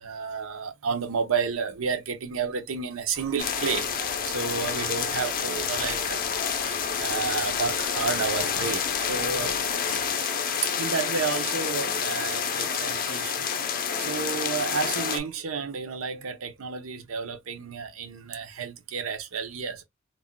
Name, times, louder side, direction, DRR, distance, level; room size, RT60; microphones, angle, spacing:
voice 1, 0.0-3.9 4.3-6.2 6.6-9.5 9.9-10.0 10.8-13.5 14.0-19.8, right 5 dB, 80° right, 0.6 m, -31 dB
sound 1, 3.1-9.7, right 1 dB, 5° right, 0.5 m, -47 dB
sound 2, 3.4-15.2, left 7 dB, 45° left, 0.5 m, -28 dB
2.4 x 2.1 x 3.6 m
head